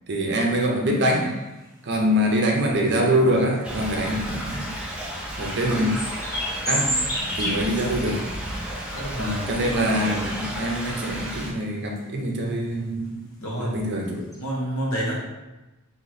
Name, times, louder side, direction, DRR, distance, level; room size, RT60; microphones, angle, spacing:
voice 1, 0.1-1.3 1.8-4.7 5.4-5.9 6.7-6.9 7.3-8.2 9.2-13.2 13.6-14.2, equal, 55° right, 0 dB, 0.7 m, -24 dB
sound 1, 0.8-1.7 2.6-2.7 3.2-4.7 5.0-5.2 5.6-8.1 8.5-8.6 9.0-9.8 10.3-10.9 11.2-11.3 11.8-12.2 12.7-12.8 13.0-13.1 13.6-13.8 14.1-14.4, equal, 15° left, 1.0 m, -30 dB
Thunder / Rain, 3.6-11.5, equal, 5° right, 0.6 m, -32 dB
voice 2, 7.5-7.8 9.0-10.1 13.4-13.8 14.4-15.1, right 1 dB, 70° left, -5 dB, 1.2 m, -30 dB
3.1 x 2.9 x 4.0 m, 1.1 s
head